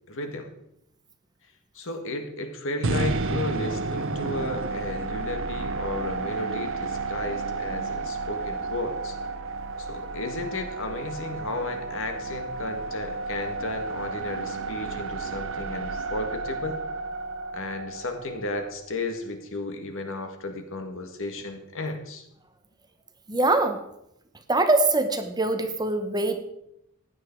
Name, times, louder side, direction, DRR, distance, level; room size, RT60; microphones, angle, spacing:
voice 1, 0.1-0.6 1.7-9.2 9.8-16.8 17.5-22.2, left 2 dB, 65° left, 6 dB, 1.8 m, -34 dB
sound 1, 2.8-19.0, right 3 dB, 60° right, 0.9 m, -32 dB
voice 2, 23.3-23.8 24.5-26.4, right 2 dB, 20° right, 7 dB, 1.1 m, -23 dB
15.5 x 9.8 x 4.6 m, 0.79 s
head